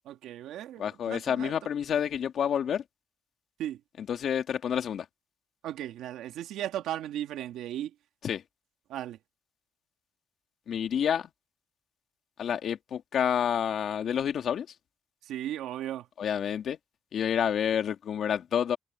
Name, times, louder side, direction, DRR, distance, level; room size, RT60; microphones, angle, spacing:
voice 1, 0.1-1.5 3.6-3.8 5.6-7.9 8.9-9.2 15.2-16.1, right 12 dB, 85° right, 2.1 m, -36 dB
voice 2, 0.8-2.8 4.0-5.1 8.2-8.4 10.7-11.3 12.4-14.7 16.2-16.8 17.1-18.8, left 8 dB, 65° left, 2.5 m, -29 dB
cardioid pair, 90°, 0 cm